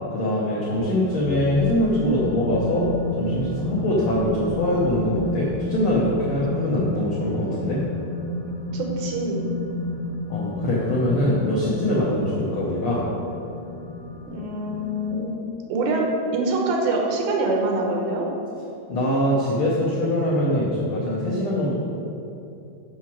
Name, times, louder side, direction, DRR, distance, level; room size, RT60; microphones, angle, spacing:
voice 1, 0.1-2.9 3.2-7.8 10.3-13.0 18.9-21.7, left 1 dB, 90° left, -6 dB, 1.2 m, -23 dB
sound 1, 0.8-6.2, right 2 dB, 55° right, 0.8 m, -40 dB
sound 2, 1.7-15.1, left 2 dB, 65° left, 1.8 m, -32 dB
voice 2, 8.7-9.4 14.3-15.3 15.7-18.3, right 2 dB, 85° right, 1 dB, 2.8 m, -24 dB
7.9 x 6.1 x 4.5 m, 2.8 s
omnidirectional pair, 4.1 m